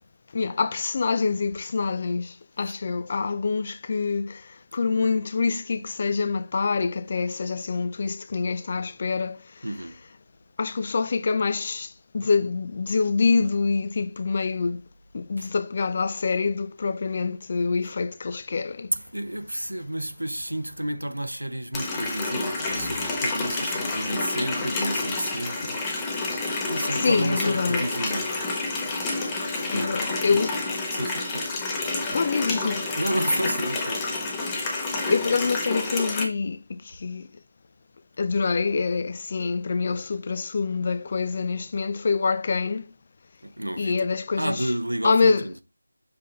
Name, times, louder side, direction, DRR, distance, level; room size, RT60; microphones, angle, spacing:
voice 1, 0.3-4.4 4.7-9.4 10.6-11.9 12.1-14.8 15.1-18.9 26.7-27.9 29.7-30.5 32.1-32.8 34.8-37.3 38.2-42.9 43.8-44.7 45.0-45.5, left 4 dB, 30° left, 0.4 m, -26 dB
voice 2, 9.6-10.0 15.4-15.5 18.9-26.1 26.7-28.5 29.6-30.0 30.3-30.4 30.9-31.6 33.0-34.1 34.3-34.4 34.7-34.8 43.4-43.9 44.4-45.6, right 1 dB, 85° right, 0.9 m, -31 dB
Water tap faucet, 21.7-36.2, left 3 dB, 10° left, 0.9 m, -29 dB
6.9 x 3.8 x 3.9 m
figure-of-eight pair, 165°, 0 cm